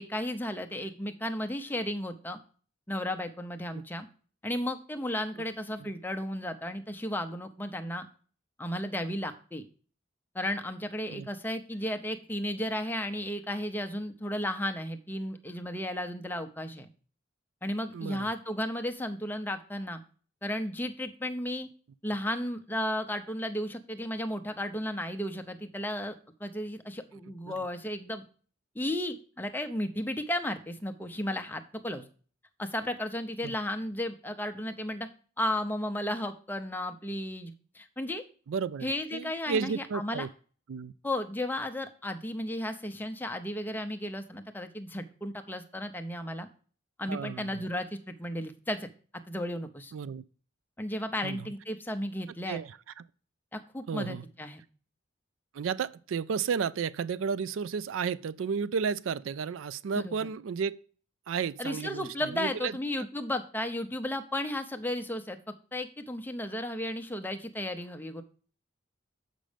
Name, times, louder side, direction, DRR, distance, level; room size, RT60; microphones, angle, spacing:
voice 1, 0.0-2.4 2.9-4.1 4.4-8.1 8.6-9.6 10.3-16.9 17.6-20.0 20.4-21.7 22.0-26.1 26.4-28.2 28.7-32.0 32.6-35.1 35.4-38.2 38.8-40.3 41.0-46.5 47.0-48.9 49.3-49.9 50.8-52.6 53.5-54.6 59.9-60.3 61.6-65.4 65.7-68.2, left 1 dB, 10° left, 0.6 m, -34 dB
voice 2, 17.9-18.3 27.5-27.6 33.4-33.5 38.5-40.3 40.7-40.9 47.1-47.6 49.9-50.2 51.2-51.5 52.4-53.0 53.9-54.2 55.5-60.8 61.3-62.7, right 6 dB, 85° right, 0.4 m, -33 dB
7.5 x 5.3 x 5.0 m
head